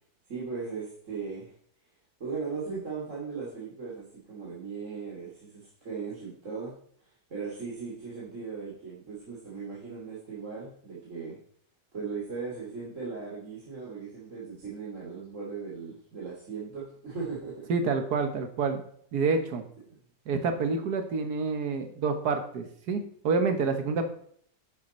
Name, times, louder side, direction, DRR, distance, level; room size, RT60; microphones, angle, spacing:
voice 1, 0.3-1.5 2.2-6.7 7.3-11.4 11.9-17.7 19.9-20.0, right 5 dB, 50° right, -7 dB, 3.1 m, -38 dB
voice 2, 17.7-18.8 19.1-19.6 20.3-24.1, right 4 dB, 85° right, 7 dB, 1.7 m, -28 dB
12.0 x 7.4 x 4.3 m, 0.62 s
omnidirectional pair, 1.6 m